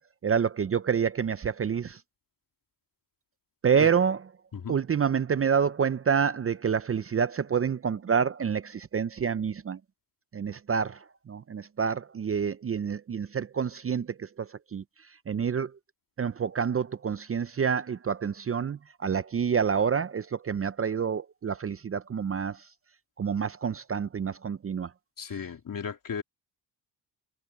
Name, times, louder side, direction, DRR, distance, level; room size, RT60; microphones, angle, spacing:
voice 1, 0.2-2.0 3.6-4.3 4.7-9.8 10.3-14.8 15.3-15.7 16.2-22.7 23.2-24.9, right 7 dB, 30° right, 0.7 m, -28 dB
voice 2, 25.2-26.2, left 6 dB, 45° left, 2.8 m, -35 dB
cardioid pair, 75°, 44 cm